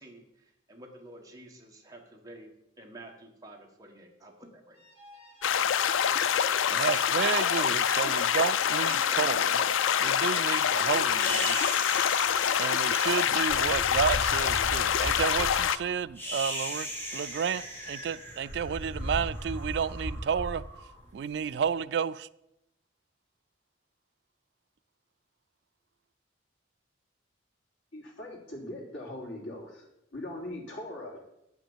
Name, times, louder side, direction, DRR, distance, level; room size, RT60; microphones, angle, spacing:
voice 1, 0.0-2.5 2.8-4.8 5.6-5.7, right 1 dB, 20° right, 1.5 m, -50 dB
sound 1, 4.7-11.9, equal, 35° left, 3.2 m, -49 dB
sound 2, 5.4-15.8, left 8 dB, 90° left, 0.4 m, -26 dB
voice 2, 6.7-9.7 10.0-11.8 12.6-20.6 21.1-22.3, right 7 dB, 60° right, 0.3 m, -31 dB
sound 3, 11.1-21.5, equal, 10° left, 1.9 m, -37 dB
voice 3, 27.9-29.8 30.1-31.2, left 1 dB, 75° left, 3.2 m, -40 dB
9.8 x 6.0 x 7.2 m
head